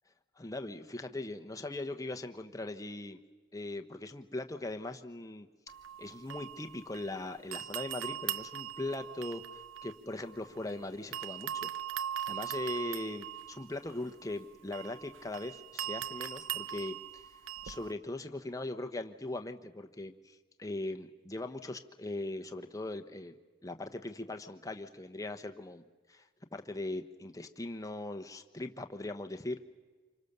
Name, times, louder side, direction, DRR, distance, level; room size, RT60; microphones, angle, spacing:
voice 1, 0.4-3.2 3.5-5.5 6.0-11.7 12.3-17.3 17.6-23.3 23.6-29.6, left 2 dB, 15° left, 6 dB, 1.0 m, -40 dB
sound 1, 5.7-7.2 7.5-10.7 11.1-17.9, right 10 dB, 70° right, 0.7 m, -40 dB
27.0 x 24.5 x 6.8 m, 1.4 s
head